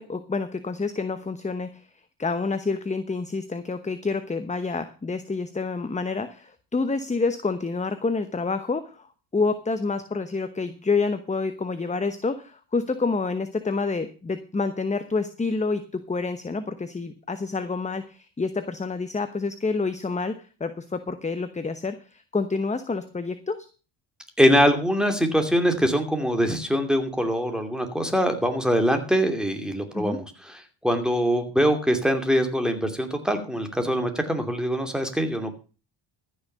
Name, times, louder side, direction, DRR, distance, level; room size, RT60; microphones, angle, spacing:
voice 1, 0.0-1.8 2.2-9.1 9.3-23.6 29.9-30.2, left 4 dB, 15° left, 10 dB, 1.0 m, -28 dB
voice 2, 24.4-35.6, equal, ahead, 6 dB, 2.6 m, -23 dB
14.0 x 6.4 x 6.7 m, 0.35 s
cardioid pair, 95°, 48 cm